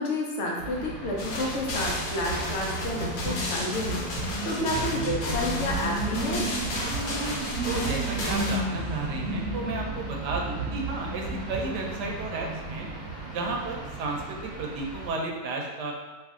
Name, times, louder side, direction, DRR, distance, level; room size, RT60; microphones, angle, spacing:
voice 1, 0.0-4.1 4.4-6.5, left 1 dB, 65° left, -1 dB, 0.7 m, -30 dB
sound 1, 0.6-15.1, right 2 dB, 40° right, 1.2 m, -34 dB
sound 2, 1.2-8.6, left 1 dB, 80° left, 1.3 m, -33 dB
sound 3, 3.2-3.3 3.8-4.3 4.8-5.2 5.7-6.1 6.6-7.0 7.5-7.9 8.4-8.9 9.4-9.8 10.3-10.7 11.2-11.6, right 6 dB, 65° right, 0.8 m, -35 dB
voice 2, 7.7-12.9 13.3-15.9, right 3 dB, 85° right, 0 dB, 1.2 m, -33 dB
3.0 x 2.5 x 3.5 m, 1.3 s
omnidirectional pair, 1.7 m